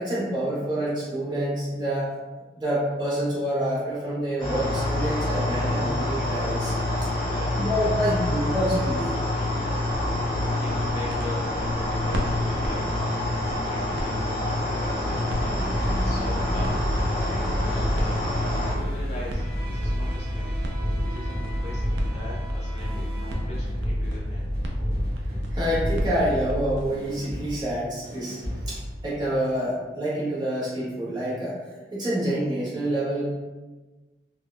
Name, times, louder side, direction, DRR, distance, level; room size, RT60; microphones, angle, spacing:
voice 1, 0.0-2.1 2.6-6.7 7.6-9.1 25.5-28.4 28.7-31.6 31.9-33.3, right 1 dB, 25° right, -9 dB, 0.9 m, -27 dB
sound 1, 4.4-18.7, left 1 dB, 20° left, 0.9 m, -27 dB
voice 2, 7.3-8.1 10.6-12.9 13.2-15.2 15.8-16.9 17.2-18.3 18.8-20.5 21.0-24.5, left 1 dB, 40° left, -5 dB, 0.5 m, -41 dB
sound 2, 9.7-27.2, equal, 85° right, 0.4 m, -39 dB
sound 3, 15.3-29.4, equal, 55° right, 0.7 m, -29 dB
3.5 x 2.0 x 2.2 m, 1.2 s
head